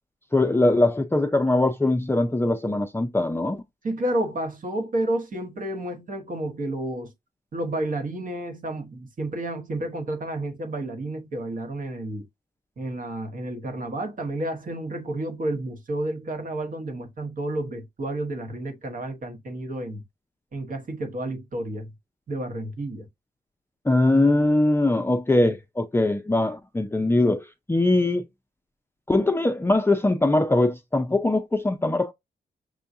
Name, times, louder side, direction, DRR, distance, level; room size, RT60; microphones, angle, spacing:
voice 1, 0.3-3.6 23.9-28.2 29.1-32.1, left 2 dB, 15° left, 0.5 m, -21 dB
voice 2, 3.8-7.1 7.5-12.3 12.8-20.0 20.5-21.9 22.3-23.1, right 1 dB, 55° right, 1.1 m, -30 dB
6.2 x 2.3 x 2.6 m
cardioid pair, 75°, 17 cm